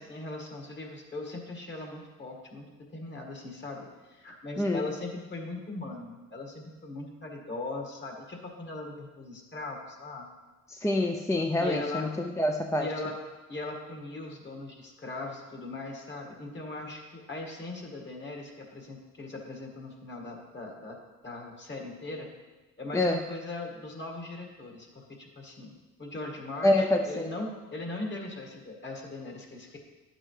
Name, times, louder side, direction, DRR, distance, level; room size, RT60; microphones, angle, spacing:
voice 1, 0.0-10.3 11.6-12.1 12.8-13.2 13.5-21.0 21.2-22.3 22.8-25.7 26.0-29.8, left 2 dB, 35° left, 1 dB, 2.0 m, -39 dB
voice 2, 10.7-12.9 22.9-23.2 26.6-27.3, left 1 dB, 10° left, 3 dB, 0.5 m, -26 dB
11.0 x 7.6 x 3.3 m, 1.2 s
cardioid pair, 90°, 30 cm